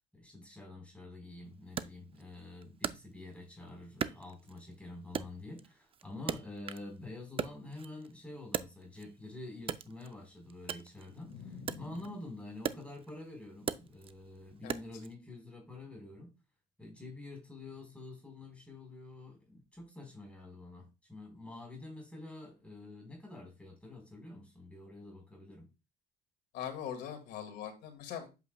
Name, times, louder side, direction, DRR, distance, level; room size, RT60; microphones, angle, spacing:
voice 1, 0.1-16.3 16.8-25.7, left 2 dB, 5° left, 4.2 m, -48 dB
Wood, 1.8-3.5 4.0-4.8 5.1-7.0 7.2-9.2 9.6-15.1, right 7 dB, 35° right, 0.4 m, -40 dB
voice 2, 11.2-12.1 14.6-14.8 26.5-28.3, left 8 dB, 85° left, 2.1 m, -42 dB
8.2 x 6.9 x 2.3 m
cardioid pair, 110°, 17 cm